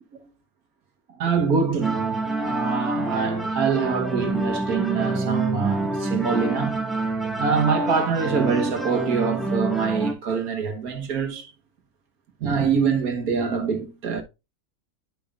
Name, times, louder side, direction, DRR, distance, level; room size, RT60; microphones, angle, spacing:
voice 1, 1.2-6.8 7.4-11.5 12.4-14.2, right 6 dB, 80° right, 1.7 m, -25 dB
sound 1, 1.8-10.1, right 2 dB, ahead, 1.4 m, -27 dB
10.0 x 5.4 x 2.5 m
omnidirectional pair, 1.5 m